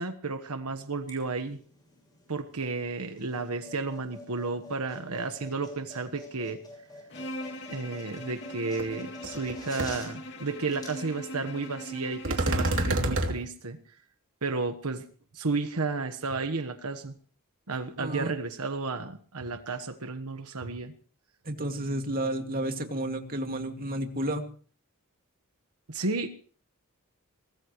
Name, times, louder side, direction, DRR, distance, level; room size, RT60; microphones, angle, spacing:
voice 1, 0.0-1.6 2.3-6.6 7.7-13.8 14.4-15.0 15.3-17.1 17.7-20.9 25.9-26.3, right 3 dB, 80° right, 8 dB, 1.3 m, -32 dB
sound 1, 1.0-12.7, left 1 dB, 20° left, 7.1 m, -48 dB
Bowed string instrument, 7.1-13.1, left 1 dB, 55° left, 2.6 m, -41 dB
sound 2, 8.8-8.9 9.2-9.5 9.8-9.9 12.2-13.3, right 2 dB, 60° right, 2.9 m, -27 dB
voice 2, 18.0-18.3 21.4-24.5, right 1 dB, 40° right, 4 dB, 2.3 m, -31 dB
23.5 x 19.0 x 3.1 m, 0.42 s
head